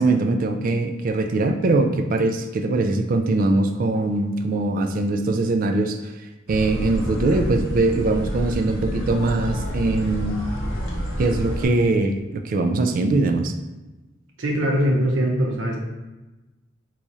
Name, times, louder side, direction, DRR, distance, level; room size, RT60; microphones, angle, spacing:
voice 1, 0.0-6.0 6.5-10.4 11.2-13.5, right 2 dB, 45° right, 6 dB, 0.3 m, -22 dB
sound 1, 6.5-11.7, equal, 85° left, 0.8 m, -28 dB
voice 2, 14.4-15.8, equal, 75° right, -1 dB, 0.7 m, -21 dB
3.0 x 2.4 x 4.0 m, 1.1 s
head